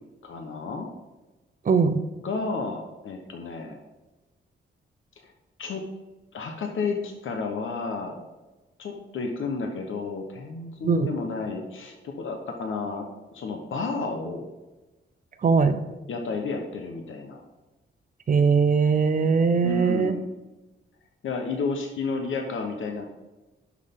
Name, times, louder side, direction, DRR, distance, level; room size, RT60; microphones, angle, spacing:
voice 1, 0.2-0.9 2.2-3.8 5.2-5.3 5.6-5.8 6.3-8.2 8.8-14.5 16.1-17.4 19.6-20.3 21.2-23.0, left 4 dB, 75° left, 3 dB, 1.1 m, -31 dB
voice 2, 1.7-2.0 10.8-11.1 15.4-15.8 18.3-20.1, right 5 dB, 40° right, 10 dB, 0.6 m, -20 dB
11.5 x 6.3 x 3.7 m, 1.1 s
wide cardioid pair, 170°, 21 cm